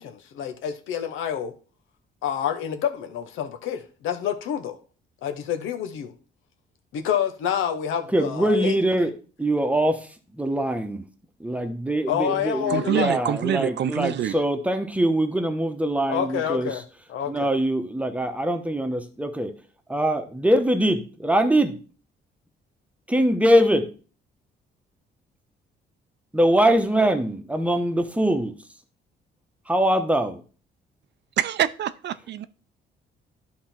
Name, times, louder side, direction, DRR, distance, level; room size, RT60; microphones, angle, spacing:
voice 1, 0.0-1.5 2.2-4.7 5.2-6.1 6.9-8.8 12.1-13.1 16.1-16.8 17.1-17.5, left 9 dB, 90° left, 7 dB, 1.0 m, -28 dB
voice 2, 8.1-9.1 9.4-10.0 10.3-11.0 11.4-16.7 17.3-19.5 19.9-21.8 23.1-23.9 26.3-28.5 29.7-30.4, right 1 dB, 5° right, 6 dB, 1.1 m, -22 dB
voice 3, 12.7-14.4 31.4-32.4, right 10 dB, 60° right, 15 dB, 0.5 m, -25 dB
11.0 x 3.7 x 4.4 m, 0.38 s
cardioid pair, 90°, 20 cm